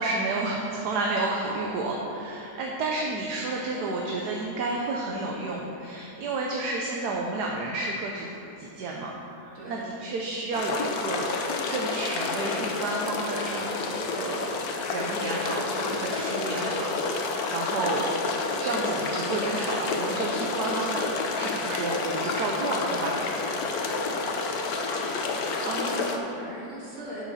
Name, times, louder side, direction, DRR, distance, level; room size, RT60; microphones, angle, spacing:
voice 1, 0.0-8.3 8.6-11.3 11.7-18.1 18.6-23.2 25.6-26.1, right 2 dB, 65° right, -1 dB, 1.3 m, -31 dB
voice 2, 3.8-4.1 9.5-9.9 23.8-24.1 24.4-24.7 25.4-27.3, right 1 dB, 45° right, -7 dB, 2.7 m, -42 dB
sound 1, 10.5-26.2, left 4 dB, 65° left, 1.2 m, -29 dB
13.0 x 6.2 x 4.2 m, 2.9 s
omnidirectional pair, 1.9 m